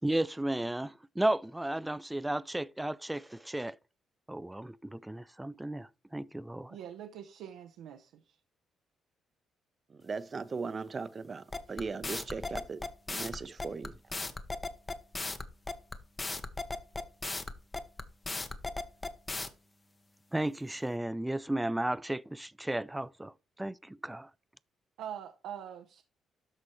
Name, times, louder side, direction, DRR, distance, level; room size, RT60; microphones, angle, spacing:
voice 1, 0.0-3.8 4.3-6.8 20.3-23.3 23.6-24.3, right 1 dB, 10° right, 0.3 m, -34 dB
voice 2, 6.7-8.4 25.0-26.0, right 9 dB, 85° right, 0.7 m, -44 dB
voice 3, 9.9-14.0, right 4 dB, 35° right, 0.7 m, -38 dB
sound 1, 11.5-19.5, left 3 dB, 25° left, 0.9 m, -36 dB
12.5 x 4.3 x 3.1 m
cardioid pair, 90°, 0 cm